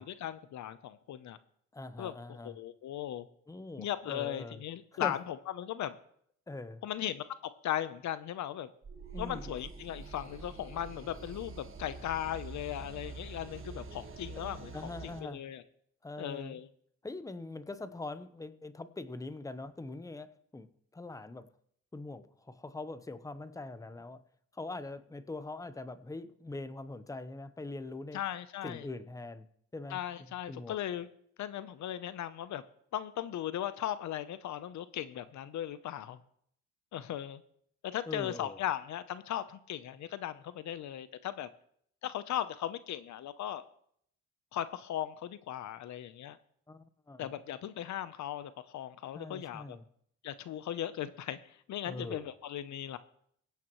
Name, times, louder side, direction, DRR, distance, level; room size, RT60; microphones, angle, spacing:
voice 1, 0.0-1.4 2.0-3.3 3.8-5.9 6.8-8.7 9.2-14.7 15.2-15.6 16.2-16.7 28.1-28.9 29.9-31.1 31.4-32.6 32.9-36.2 36.9-37.4 37.8-41.5 42.0-43.7 44.5-46.4 47.2-49.8 50.2-51.4 51.7-53.0, left 11 dB, 70° left, 14 dB, 0.8 m, -37 dB
voice 2, 1.7-2.6 3.5-4.6 4.9-5.2 6.5-6.8 9.1-9.5 14.7-15.4 16.0-16.6 17.0-20.7 20.9-21.5 21.9-24.2 24.5-28.2 28.6-29.5 29.7-30.0 30.5-30.8 38.1-38.6 46.7-47.3 49.1-49.8 51.8-52.3, left 2 dB, 10° left, 12 dB, 0.9 m, -42 dB
sound 1, 8.8-15.2, right 4 dB, 45° right, 1.6 m, -46 dB
22.5 x 9.2 x 3.1 m, 0.68 s
cardioid pair, 90°, 30 cm